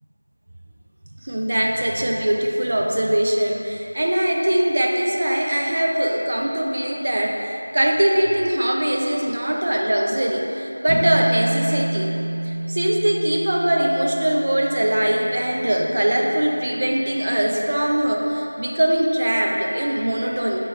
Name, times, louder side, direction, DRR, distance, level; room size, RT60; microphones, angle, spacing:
voice 1, 1.2-12.1 12.4-20.6, right 1 dB, 35° right, 0 dB, 0.3 m, -21 dB
sound 1, 10.9-17.5, right 1 dB, 10° right, 0.9 m, -30 dB
4.7 x 3.0 x 3.1 m, 3.0 s
figure-of-eight pair, 175°, 0 cm